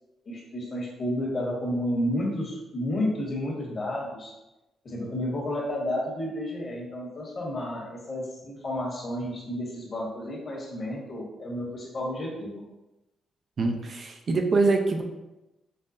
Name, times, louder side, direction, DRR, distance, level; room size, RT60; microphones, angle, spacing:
voice 1, 0.2-4.3 4.8-12.6, left 1 dB, 50° left, -3 dB, 1.3 m, -31 dB
voice 2, 13.6-15.0, right 3 dB, 50° right, 3 dB, 0.5 m, -24 dB
5.4 x 2.1 x 2.6 m, 0.98 s
cardioid pair, 80°, 0 cm